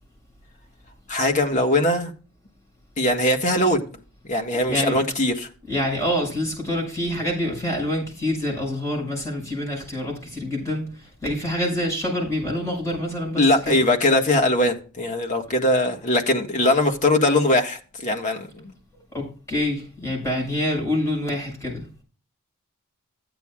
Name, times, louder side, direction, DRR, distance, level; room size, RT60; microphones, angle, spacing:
voice 1, 1.1-2.1 3.0-4.0 4.3-5.5 13.4-18.7, left 1 dB, 35° left, 3 dB, 1.6 m, -21 dB
voice 2, 4.5-5.0 5.7-13.8 19.1-21.8, left 1 dB, 15° left, -2 dB, 5.6 m, -26 dB
14.5 x 9.2 x 2.4 m, 0.38 s
head